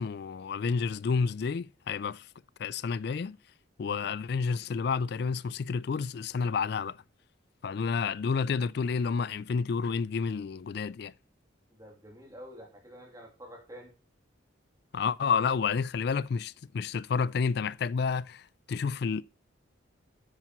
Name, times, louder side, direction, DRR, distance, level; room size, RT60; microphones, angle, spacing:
voice 1, 0.0-2.3 2.6-3.4 3.8-7.0 7.6-11.1 14.9-19.2, left 5 dB, 55° left, 0.3 m, -30 dB
voice 2, 11.7-13.9, equal, 15° right, 2.8 m, -48 dB
9.8 x 8.9 x 3.1 m
head